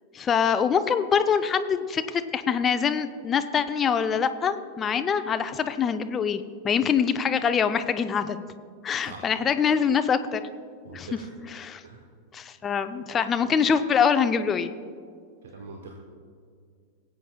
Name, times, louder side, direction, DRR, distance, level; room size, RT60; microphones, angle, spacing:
voice 1, 0.1-8.4 8.8-10.4 10.9-11.2 11.5-11.8 12.3-14.7, left 7 dB, 25° left, 10 dB, 0.4 m, -24 dB
voice 2, 9.0-9.3 10.8-11.3 11.8-12.0 15.4-15.9, right 4 dB, 60° right, 3 dB, 0.9 m, -43 dB
19.0 x 8.4 x 2.3 m, 2.2 s
figure-of-eight pair, 90°, 0 cm